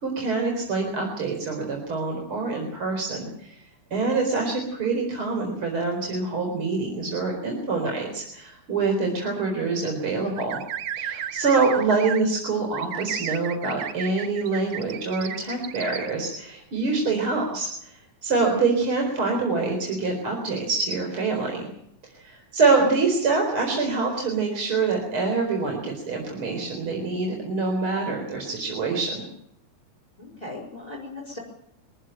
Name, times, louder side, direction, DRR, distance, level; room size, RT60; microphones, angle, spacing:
voice 1, 0.0-3.6 3.9-10.6 11.0-21.7 22.1-29.2, right 4 dB, 40° right, 1 dB, 5.0 m, -25 dB
sound 1, 10.4-12.2 12.7-16.1, right 9 dB, 60° right, 1.8 m, -33 dB
voice 2, 30.2-31.4, left 2 dB, 10° left, 0 dB, 4.8 m, -38 dB
25.0 x 15.0 x 9.1 m, 0.75 s
omnidirectional pair, 3.5 m